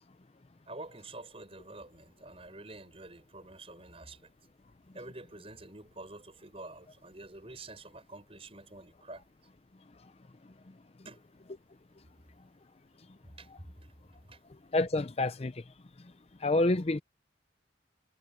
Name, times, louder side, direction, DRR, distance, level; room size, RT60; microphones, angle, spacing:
voice 1, 0.7-4.3 4.9-9.3 11.0-11.2 13.4-13.9 14.2-14.4, right 2 dB, 30° right, 7.0 m, -48 dB
voice 2, 14.7-15.5 16.4-17.0, left 2 dB, 35° left, 0.5 m, -27 dB
head